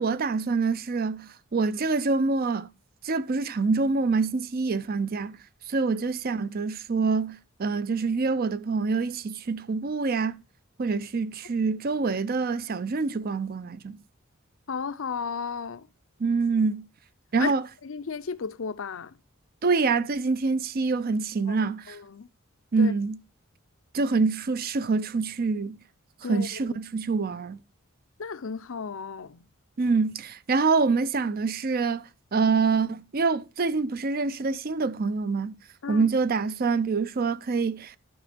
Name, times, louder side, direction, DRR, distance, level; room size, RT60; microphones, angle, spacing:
voice 1, 0.0-2.7 3.0-5.4 5.7-10.4 10.8-14.0 16.2-16.8 17.3-17.6 19.6-22.0 22.7-23.2 23.9-25.8 26.3-27.6 29.8-35.5 35.9-37.9, right 4 dB, 45° right, 0.5 m, -26 dB
voice 2, 14.7-15.9 17.4-17.5 17.8-19.2 21.5-21.6 21.9-22.3 22.8-22.9 26.2-26.8 28.2-29.4 35.8-36.1, left 5 dB, 65° left, 0.6 m, -34 dB
12.0 x 5.1 x 5.0 m
head